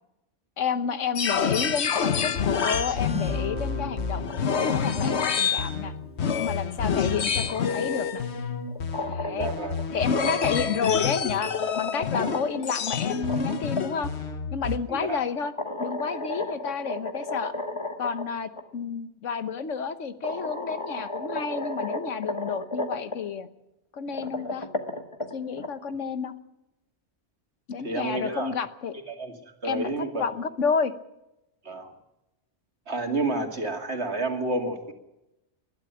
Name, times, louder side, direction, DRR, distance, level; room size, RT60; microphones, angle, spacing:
voice 1, 0.6-5.9 6.4-8.2 9.1-9.5 9.9-14.1 14.5-15.5 15.8-17.5 18.0-23.5 23.9-24.7 25.3-26.3 27.7-29.0 29.6-29.9 30.2-30.9, left 6 dB, 90° left, 11 dB, 1.5 m, -30 dB
sound 1, 1.1-14.8, left 6 dB, 65° left, 1.3 m, -28 dB
Guitar, 3.1-7.7, equal, 10° right, 4.0 m, -40 dB
sound 2, 8.7-9.8 11.0-13.8 15.4-18.2 18.6-18.7 19.7-19.8 20.2-23.2 24.0-25.7, left 2 dB, 25° left, 1.6 m, -33 dB
voice 2, 9.2-9.8 12.2-12.4 14.9-15.2 27.8-28.5 29.1-29.4 29.6-30.3 31.6-31.9 32.9-34.9, right 2 dB, 65° right, 4 dB, 2.6 m, -30 dB
21.0 x 12.5 x 9.9 m, 0.93 s
omnidirectional pair, 1.2 m